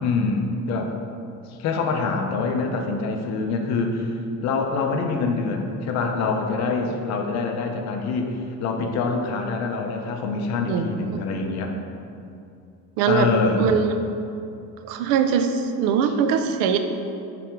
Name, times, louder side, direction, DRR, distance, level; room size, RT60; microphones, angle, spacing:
voice 1, 0.0-0.9 1.5-4.1 4.4-11.7 13.1-13.8, left 4 dB, 50° left, 3 dB, 0.6 m, -25 dB
voice 2, 10.7-11.3 13.0-13.3 13.6-14.0 14.8-16.8, right 7 dB, 80° right, 7 dB, 0.5 m, -22 dB
5.8 x 3.4 x 5.0 m, 2.6 s
cardioid pair, 170°, 35 cm